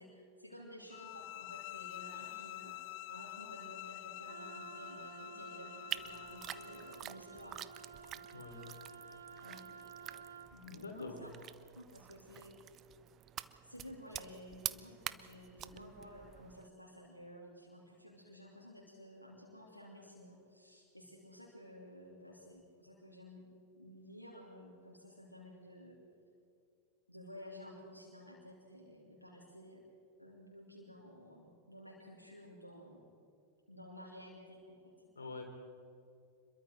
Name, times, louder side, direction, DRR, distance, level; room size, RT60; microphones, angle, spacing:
voice 1, 0.0-7.6 9.4-9.6 10.5-12.5 13.6-23.4 23.7-26.0 27.1-29.8 30.2-33.0 33.7-34.9, equal, 90° left, -2 dB, 2.9 m, -53 dB
sound 1, 0.9-7.0, left 20 dB, 45° left, 0.4 m, -48 dB
Wind instrument woodwind instrument, 4.3-10.5, right 5 dB, 75° right, 2.3 m, -52 dB
sound 2, 5.9-16.7, right 11 dB, 30° right, 0.7 m, -47 dB
voice 2, 8.3-8.7 10.6-11.2 35.2-35.4, left 4 dB, 75° left, 2 dB, 3.4 m, -46 dB
26.5 x 22.5 x 4.7 m, 2.4 s
figure-of-eight pair, 90°, 0 cm